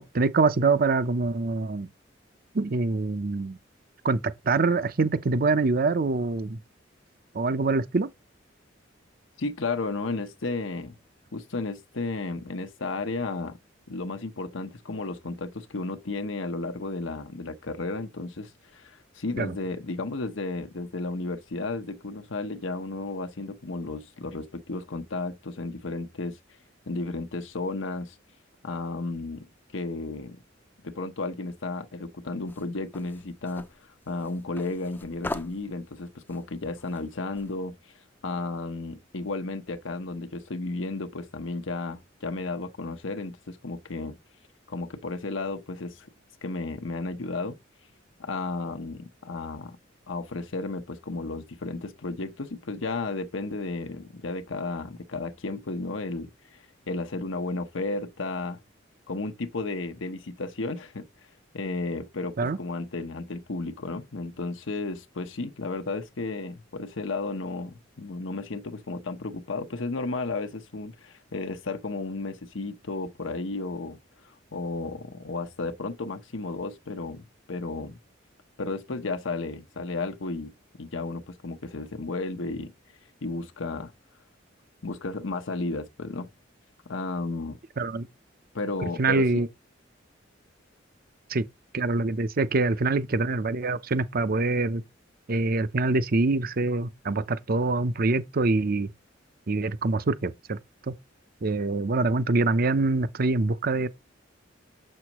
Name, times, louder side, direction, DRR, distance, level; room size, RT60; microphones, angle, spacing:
voice 1, 0.0-1.9 2.5-3.6 4.0-6.6 7.3-8.1 19.4-19.5 62.4-62.6 87.8-88.1 89.0-89.5 91.3-91.4 91.7-94.8 95.3-98.9 99.5-100.6 100.9-101.0 101.4-103.9, right 3 dB, 50° right, 0.6 m, -25 dB
voice 2, 9.4-11.0 11.3-13.6 13.9-26.4 26.9-28.1 28.6-29.5 29.7-30.4 30.8-37.9 38.2-44.2 44.7-46.1 46.4-47.6 48.2-49.8 50.1-58.6 59.1-61.1 61.5-78.0 78.6-80.5 80.8-82.7 83.2-83.9 84.8-86.3 86.9-87.6 88.5-89.4, left 3 dB, 90° left, 0.9 m, -33 dB
sound 1, 32.5-37.6, left 2 dB, 10° left, 0.4 m, -41 dB
7.1 x 6.4 x 3.0 m
head